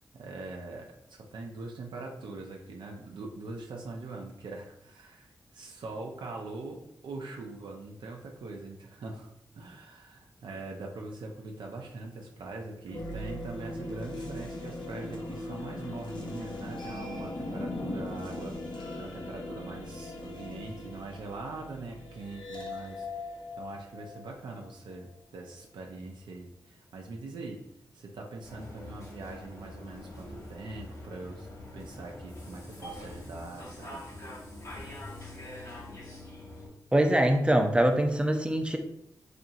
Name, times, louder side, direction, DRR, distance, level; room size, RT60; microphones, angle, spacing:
voice 1, 0.1-27.7 27.9-31.5 31.7-34.0, right 3 dB, 85° right, 1 dB, 0.4 m, -42 dB
sound 1, 12.9-24.7, left 2 dB, 75° left, 0.6 m, -39 dB
sound 2, 28.4-36.7, left 1 dB, 50° left, 1.2 m, -44 dB
voice 2, 36.9-38.8, right 1 dB, 15° right, 4 dB, 0.4 m, -23 dB
2.8 x 2.4 x 2.6 m, 0.78 s
cardioid pair, 55°, 8 cm